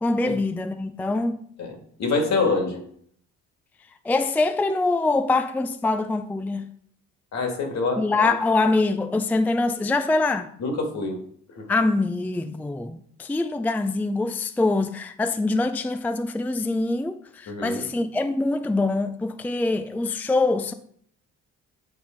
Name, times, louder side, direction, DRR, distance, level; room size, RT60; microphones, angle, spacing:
voice 1, 0.0-1.4 4.0-6.7 8.0-10.5 11.7-20.7, left 3 dB, 5° left, 0.4 m, -24 dB
voice 2, 1.6-2.8 7.3-8.3 10.6-11.2 11.6-11.7 17.5-17.9, left 3 dB, 65° left, 1.9 m, -26 dB
8.5 x 4.1 x 4.3 m
cardioid pair, 90°, 30 cm